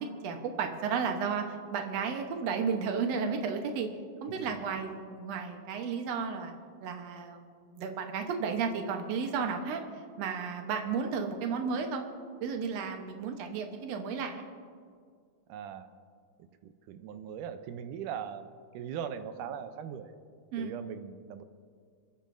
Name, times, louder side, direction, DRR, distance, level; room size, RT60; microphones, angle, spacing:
voice 1, 0.0-3.9 4.2-6.5 6.8-9.8 10.2-12.0 12.4-14.5 20.5-20.7, right 5 dB, 65° right, 4 dB, 1.9 m, -33 dB
voice 2, 15.5-15.9 16.4-20.2 20.6-21.4, right 8 dB, 80° right, 10 dB, 2.1 m, -40 dB
29.5 x 10.0 x 2.6 m, 2.1 s
omnidirectional pair, 3.8 m